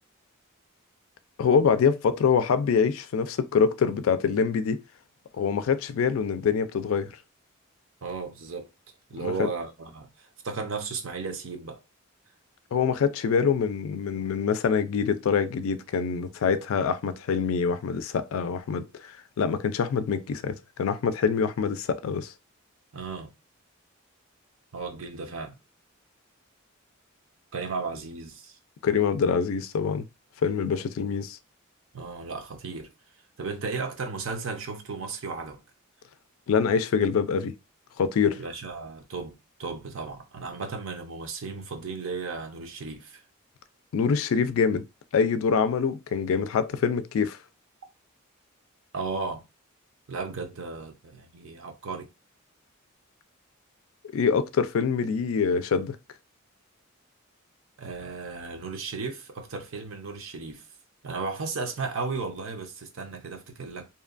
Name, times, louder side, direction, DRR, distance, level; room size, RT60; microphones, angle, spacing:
voice 1, 1.4-4.8 5.4-7.1 9.2-9.5 12.7-22.3 28.8-30.0 30.4-31.4 36.5-37.6 38.0-38.4 43.9-44.9 45.1-47.4 54.1-56.0, left 6 dB, 70° left, 0.3 m, -25 dB
voice 2, 8.0-8.7 9.1-11.8 22.9-23.3 24.7-25.6 27.5-28.6 31.9-32.9 33.4-35.6 38.4-43.2 48.9-49.4 50.1-52.1 57.8-60.6 61.0-63.9, right 4 dB, 65° right, 0.6 m, -35 dB
2.7 x 2.2 x 2.4 m
head